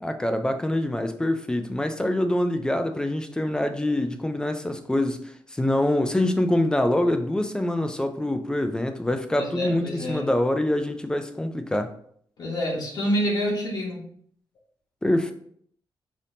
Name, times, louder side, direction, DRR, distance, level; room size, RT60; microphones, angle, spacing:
voice 1, 0.0-5.2 5.5-11.9 15.0-15.3, left 1 dB, 10° left, 0.3 m, -25 dB
voice 2, 9.4-10.3 12.4-14.0, equal, 55° left, 1.1 m, -27 dB
5.1 x 2.7 x 2.7 m
wide cardioid pair, 160°, 8 cm